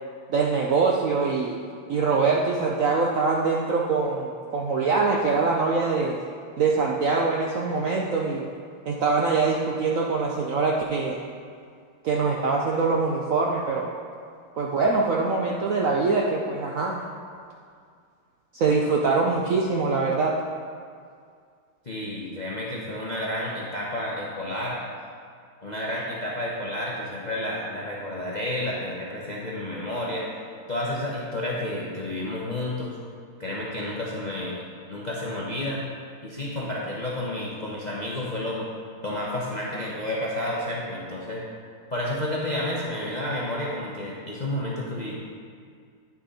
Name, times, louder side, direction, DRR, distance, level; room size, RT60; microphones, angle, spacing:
voice 1, 0.3-1.6 1.9-6.2 6.6-8.5 8.9-11.2 12.0-13.9 14.6-17.0 18.5-20.3, right 4 dB, 65° right, -2 dB, 0.8 m, -23 dB
voice 2, 21.8-24.8 25.6-30.3 30.7-33.0 33.4-34.6 34.9-35.8 36.2-38.7 39.0-41.4 41.9-45.2, left 1 dB, 40° left, -4 dB, 0.6 m, -30 dB
9.5 x 6.3 x 4.1 m, 2.2 s
omnidirectional pair, 2.1 m